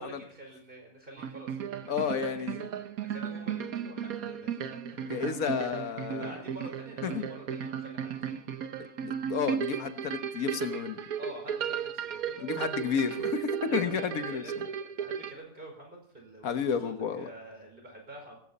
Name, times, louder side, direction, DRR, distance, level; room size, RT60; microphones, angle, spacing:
voice 1, 0.0-4.8 5.2-8.4 11.2-12.5 12.9-13.3 13.6-16.8 17.1-18.3, right 1 dB, 40° right, 1 dB, 5.1 m, -48 dB
sound 1, 1.2-15.3, right 8 dB, 85° right, 1.4 m, -35 dB
voice 2, 1.9-2.6 5.0-6.3 7.0-7.3 9.0-11.0 12.4-14.4 16.4-17.3, left 6 dB, 80° left, 9 dB, 1.5 m, -31 dB
18.0 x 15.5 x 4.2 m, 0.63 s
omnidirectional pair, 1.5 m